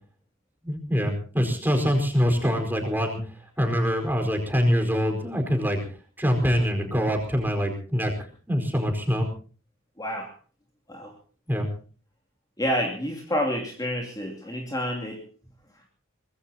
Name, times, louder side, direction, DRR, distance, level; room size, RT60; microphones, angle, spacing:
voice 1, 0.6-5.8 6.2-9.3 11.5-11.7, equal, 10° right, 3 dB, 4.7 m, -24 dB
voice 2, 10.0-10.3 10.9-11.1 12.6-15.2, equal, 20° left, 0 dB, 2.7 m, -29 dB
24.0 x 20.5 x 2.9 m, 0.39 s
head